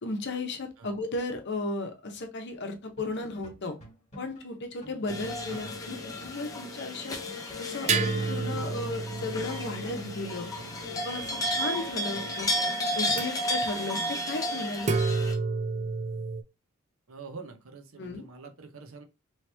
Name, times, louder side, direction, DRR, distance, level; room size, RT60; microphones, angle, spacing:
voice 1, 0.0-3.8 4.2-7.2 7.6-10.5 10.9-12.5 13.0-14.9 18.0-18.3, left 2 dB, 55° left, 0.7 m, -35 dB
sound 1, 2.5-2.7 3.0-6.4 6.7-6.8 7.1-11.4, left 1 dB, 35° left, 1.5 m, -51 dB
sound 2, 5.1-15.3, equal, 15° left, 0.7 m, -33 dB
sound 3, 5.1-6.3 7.9-11.6 13.1-13.2 14.8-16.4, right 4 dB, 35° right, 0.4 m, -31 dB
voice 2, 5.5-5.8 8.4-8.7 10.7-10.9 12.1-12.6 17.1-19.0, right 4 dB, 70° right, 0.7 m, -46 dB
3.1 x 2.9 x 3.3 m
head